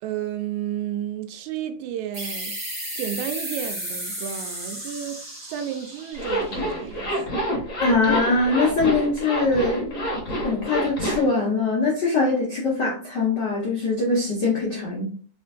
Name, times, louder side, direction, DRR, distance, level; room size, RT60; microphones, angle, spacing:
voice 1, 0.0-2.6 3.0-7.4, right 10 dB, 80° right, 1.9 m, -32 dB
sound 1, 2.1-7.4, right 1 dB, 30° right, 1.0 m, -34 dB
Zipper (clothing), 6.1-11.3, equal, 40° left, 1.1 m, -27 dB
voice 2, 7.8-10.1 10.4-15.1, left 3 dB, 75° left, 0.9 m, -22 dB
4.4 x 3.1 x 2.4 m
omnidirectional pair, 3.4 m